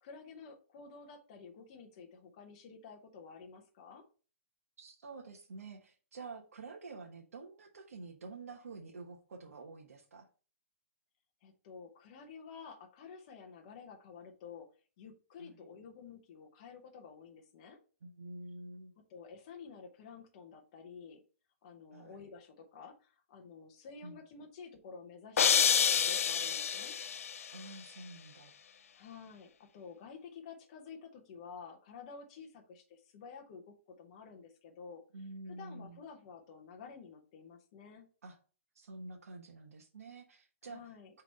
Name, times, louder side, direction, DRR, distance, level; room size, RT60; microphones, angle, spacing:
voice 1, 0.0-4.0 11.4-14.7 15.0-17.8 19.1-21.2 21.6-26.9 28.9-35.0 35.5-38.1 40.6-41.1, left 5 dB, 25° left, 2 dB, 0.8 m, -51 dB
voice 2, 4.8-10.3 15.4-15.6 18.0-18.9 21.9-22.3 24.0-24.2 27.5-28.5 35.1-36.0 38.2-38.4 38.7-40.8, right 3 dB, 90° right, 2 dB, 1.3 m, -48 dB
sound 1, 25.4-27.5, left 8 dB, 75° left, 0.4 m, -28 dB
5.8 x 3.5 x 5.2 m, 0.37 s
hypercardioid pair, 175°, 8 cm